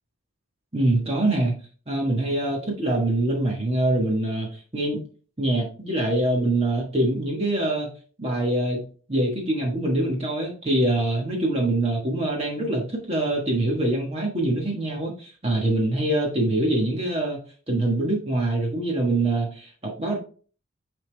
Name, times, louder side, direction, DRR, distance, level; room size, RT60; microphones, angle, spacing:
voice 1, 0.7-1.6 1.9-5.0 5.4-7.9 8.2-8.8 9.1-17.4 17.7-20.2, right 1 dB, 30° right, -1 dB, 1.3 m, -24 dB
9.3 x 3.6 x 3.3 m, 0.40 s
head